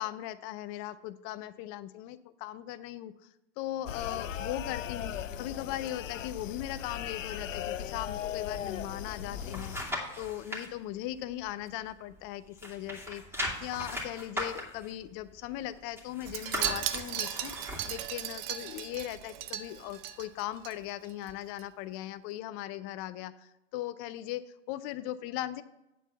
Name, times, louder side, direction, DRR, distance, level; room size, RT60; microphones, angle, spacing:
voice 1, 0.0-3.1 3.6-17.5 17.9-25.6, left 13 dB, 40° left, 15 dB, 0.5 m, -39 dB
sound 1, 3.9-9.8, left 9 dB, 85° left, 0.6 m, -38 dB
sound 2, 9.1-10.7 11.1-12.3 12.5-18.1 18.5-18.6, left 1 dB, 5° right, 2.6 m, -39 dB
Wind chime, 16.3-20.7 21.0-21.3 21.6-21.7, right 12 dB, 55° right, 0.8 m, -36 dB
9.0 x 4.4 x 7.0 m, 0.91 s
hypercardioid pair, 100°, 38 cm